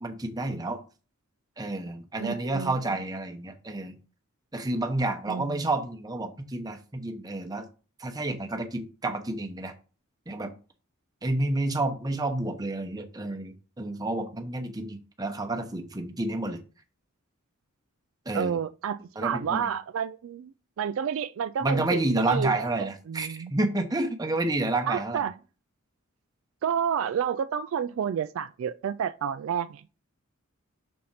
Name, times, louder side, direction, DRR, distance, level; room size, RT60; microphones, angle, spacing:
voice 1, 0.0-0.8 1.6-4.0 4.5-7.7 8.0-9.7 10.3-10.5 11.2-16.6 18.3-18.6 19.2-19.7 21.6-25.2, right 2 dB, 20° right, 0.9 m, -30 dB
voice 2, 2.2-2.7 5.3-5.6 18.3-20.5 20.8-23.5 24.9-25.3 26.6-29.8, right 8 dB, 65° right, 0.3 m, -30 dB
6.3 x 4.2 x 5.7 m
head